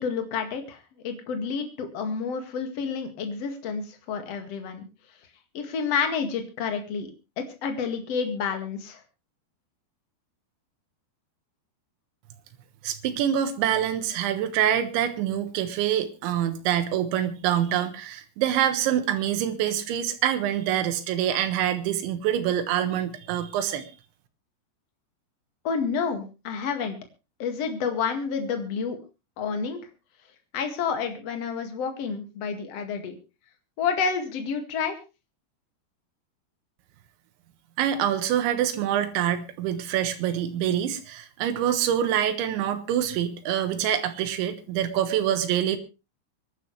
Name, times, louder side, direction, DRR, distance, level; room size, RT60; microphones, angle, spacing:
voice 1, 0.0-4.9 5.5-7.1 7.4-9.0 25.6-27.0 27.4-29.0 29.4-29.8 30.5-33.1 33.8-35.0, left 6 dB, 45° left, 6 dB, 2.4 m, -29 dB
voice 2, 12.8-23.9 37.8-45.8, right 10 dB, 85° right, 8 dB, 3.6 m, -25 dB
25.0 x 11.5 x 3.2 m, 0.29 s
omnidirectional pair, 5.1 m